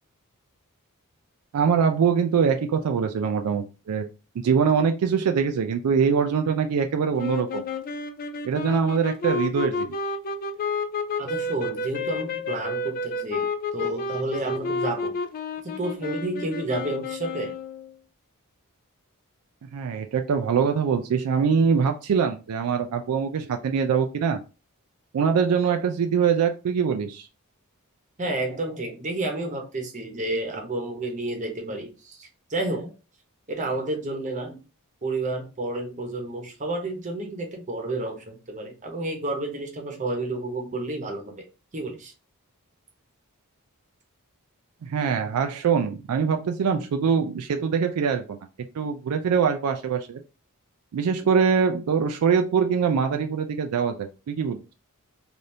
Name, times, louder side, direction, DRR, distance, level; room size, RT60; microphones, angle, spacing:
voice 1, 1.5-4.1 4.4-7.6 8.4-9.9 19.7-24.4 25.1-27.3 44.8-48.4 48.7-50.2 50.9-54.6, right 6 dB, 75° right, 6 dB, 0.3 m, -23 dB
sound 1, 7.2-17.9, left 3 dB, 40° left, 0.3 m, -31 dB
voice 2, 11.2-13.5 13.7-15.1 15.6-17.5 28.2-32.9 33.5-34.6 35.0-41.3 41.7-42.1, right 2 dB, 35° right, 2 dB, 0.9 m, -30 dB
3.3 x 2.6 x 2.7 m, 0.32 s
head